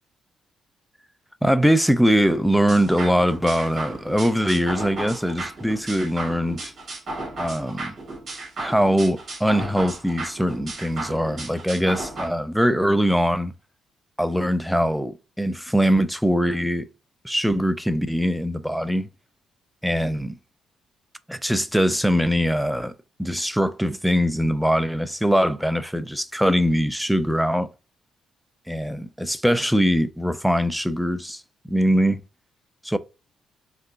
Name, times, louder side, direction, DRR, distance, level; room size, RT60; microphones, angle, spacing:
voice 1, 1.4-6.7 7.4-7.9 8.6-13.5 14.2-16.9 17.2-19.1 19.8-20.3 21.3-22.9 23.2-27.7 28.7-31.4 31.7-32.2 32.8-33.0, equal, ahead, 0.3 m, -22 dB
sound 1, 2.7-12.3, right 2 dB, 45° right, 1.8 m, -35 dB
3.2 x 2.8 x 2.4 m
cardioid pair, 90°, 0 cm